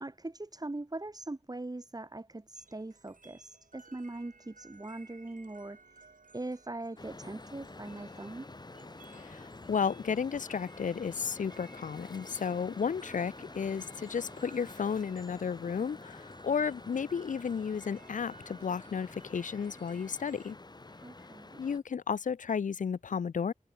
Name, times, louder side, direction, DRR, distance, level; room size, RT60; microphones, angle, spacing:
voice 1, 0.0-8.5 21.0-21.6, right 2 dB, 30° right, 1.2 m, -41 dB
sound 1, 2.5-20.5, right 4 dB, 80° right, 3.0 m, -58 dB
sound 2, 7.0-21.8, left 2 dB, 30° left, 0.8 m, -49 dB
voice 2, 9.1-20.6 21.6-23.5, left 6 dB, 70° left, 0.4 m, -33 dB
wide cardioid pair, 65°, 14 cm